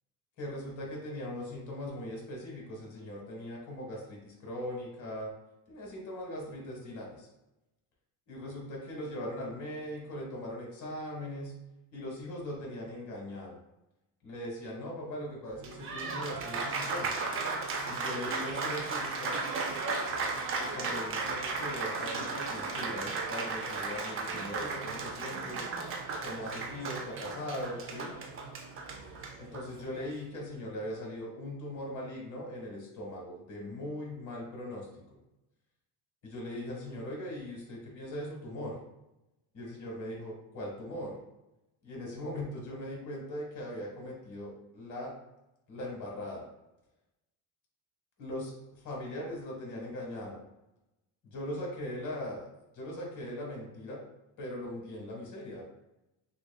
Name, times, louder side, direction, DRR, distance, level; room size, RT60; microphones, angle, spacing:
voice 1, 0.4-5.3 5.7-7.3 8.3-11.5 11.9-13.6 14.2-17.1 17.9-19.4 20.6-25.6 26.2-28.1 29.4-35.0 36.2-38.8 39.5-41.2 41.8-45.1 45.7-46.5 48.2-48.5 48.8-50.4 51.2-52.5 52.7-54.0 54.4-55.6, left 1 dB, 45° left, -2 dB, 1.5 m, -40 dB
Applause, 15.5-30.2, right 3 dB, 30° right, 0.4 m, -35 dB
5.9 x 2.3 x 2.2 m, 0.92 s
cardioid pair, 135°, 43 cm